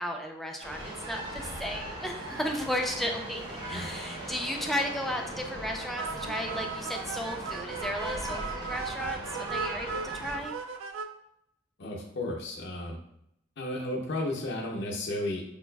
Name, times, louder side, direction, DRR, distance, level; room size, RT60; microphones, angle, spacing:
voice 1, 0.0-10.6, equal, ahead, 2 dB, 0.3 m, -34 dB
sound 1, 0.6-10.4, right 1 dB, 65° right, 1.1 m, -39 dB
sound 2, 6.0-11.1, right 5 dB, 85° right, 0.3 m, -37 dB
voice 2, 11.8-13.0 13.6-15.4, left 1 dB, 60° left, -2 dB, 0.7 m, -33 dB
5.1 x 2.3 x 2.2 m, 0.78 s
head